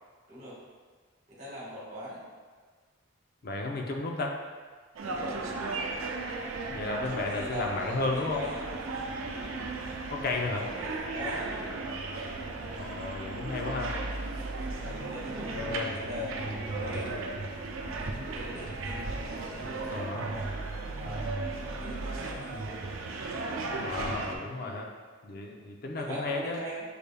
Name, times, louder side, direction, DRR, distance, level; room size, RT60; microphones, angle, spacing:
voice 1, 1.3-2.2 5.0-5.9 6.9-8.7 9.2-9.7 10.5-11.7 14.8-17.1 17.8-20.5 20.9-21.4 21.8-22.7 24.6-24.8 26.0-26.8, left 1 dB, 35° right, -6 dB, 1.3 m, -41 dB
voice 2, 3.4-4.4 6.2-6.3 6.7-8.4 10.1-10.6 12.7-13.9 15.5-16.0 16.7-17.0 18.5-18.7 19.9-20.3 23.7-24.9 25.2-26.6, left 3 dB, 50° left, 1 dB, 0.5 m, -33 dB
sound 1, 5.0-24.4, right 3 dB, 80° right, 0.5 m, -36 dB
6.7 x 3.4 x 2.2 m, 1.5 s
head